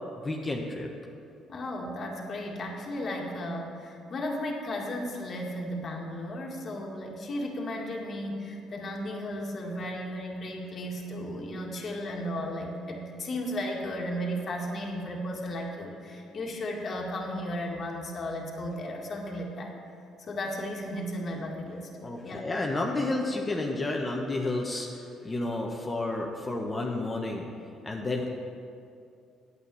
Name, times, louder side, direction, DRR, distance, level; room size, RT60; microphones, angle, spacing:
voice 1, 0.2-0.9 22.0-27.5 27.8-28.3, left 2 dB, 30° left, 0 dB, 1.3 m, -31 dB
voice 2, 1.5-19.7 20.2-22.5, left 1 dB, 45° left, -1 dB, 2.0 m, -35 dB
9.3 x 8.3 x 7.0 m, 2.5 s
hypercardioid pair, 55°, 0 cm